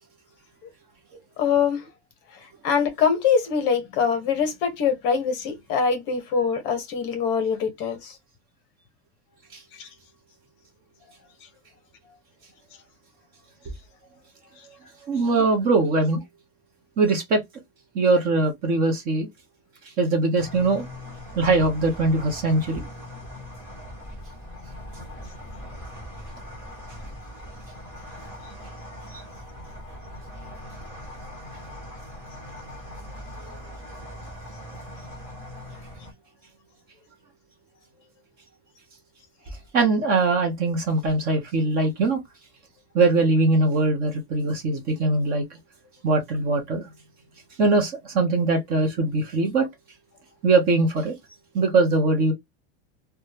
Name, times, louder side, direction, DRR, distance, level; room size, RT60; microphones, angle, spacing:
voice 1, 1.4-1.8 2.6-8.2 9.8-9.9 15.4-15.5, left 6 dB, 35° left, 0.7 m, -23 dB
voice 2, 15.1-16.2 17.0-17.4 17.9-19.3 20.0-20.9 21.4-22.9 29.1-29.2 39.7-42.2 42.9-45.4 46.0-46.9 47.6-49.7 50.4-51.1 51.5-52.3, right 3 dB, 30° right, 0.6 m, -21 dB
sound 1, 20.4-36.1, left 1 dB, 5° right, 1.2 m, -40 dB
2.5 x 2.2 x 3.1 m
supercardioid pair, 165°, 32 cm